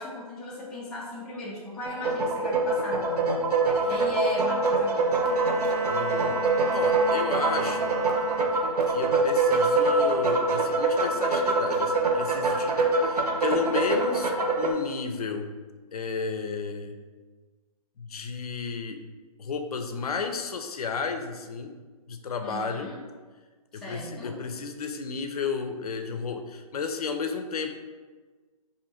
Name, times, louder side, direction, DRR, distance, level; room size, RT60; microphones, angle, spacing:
voice 1, 0.0-3.4 3.8-5.1 22.4-23.0 23.7-24.4, left 2 dB, 5° left, -8 dB, 0.4 m, -37 dB
sound 1, 1.8-14.7, right 2 dB, 90° right, 0.6 m, -24 dB
Bowed string instrument, 4.8-8.9, right 3 dB, 55° right, 0.7 m, -36 dB
voice 2, 5.9-6.4 6.7-7.9 8.9-15.5 15.9-17.0 18.0-19.0 19.4-21.8 22.1-22.9 23.7-27.8, left 5 dB, 75° left, 6 dB, 0.5 m, -33 dB
2.6 x 2.6 x 4.2 m, 1.4 s
hypercardioid pair, 145°, 19 cm